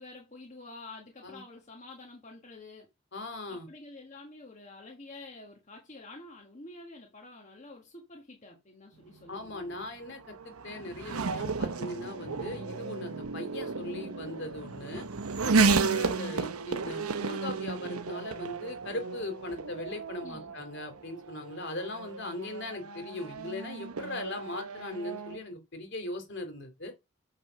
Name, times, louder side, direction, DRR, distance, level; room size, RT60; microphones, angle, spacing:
voice 1, 0.0-2.9 3.5-9.9 20.2-20.6, left 2 dB, 35° left, 1.5 m, -48 dB
voice 2, 3.1-3.7 9.3-15.1 15.4-26.9, left 2 dB, 55° left, 2.7 m, -39 dB
Race car auto racing / Accelerating revving vroom, 9.1-25.4, right 4 dB, 90° right, 0.9 m, -33 dB
7.3 x 5.9 x 5.6 m
head